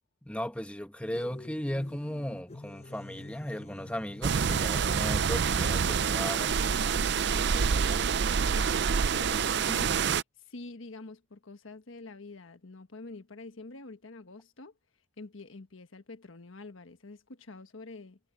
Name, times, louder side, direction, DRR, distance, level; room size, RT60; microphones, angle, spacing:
voice 1, 0.2-6.8, equal, 5° left, 1.3 m, -36 dB
sound 1, 1.1-4.6, left 2 dB, 30° left, 0.9 m, -47 dB
sound 2, 4.2-10.2, right 6 dB, 60° right, 0.5 m, -27 dB
voice 2, 7.3-10.0 10.4-14.7 15.2-18.2, left 3 dB, 80° left, 1.3 m, -46 dB
head